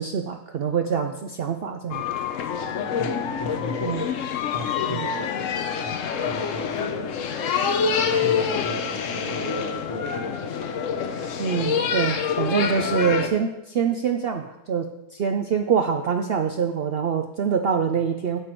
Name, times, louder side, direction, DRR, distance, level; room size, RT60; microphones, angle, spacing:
voice 1, 0.0-2.0 3.8-4.0 4.9-5.1 11.4-18.4, right 6 dB, 75° right, 6 dB, 0.5 m, -25 dB
sound 1, 1.9-13.3, left 6 dB, 60° left, 1.0 m, -26 dB
voice 2, 2.9-4.0 4.5-5.5 5.8-7.1 8.1-10.7, left 1 dB, 30° left, 2 dB, 0.5 m, -35 dB
9.0 x 7.7 x 4.5 m, 0.93 s
omnidirectional pair, 1.6 m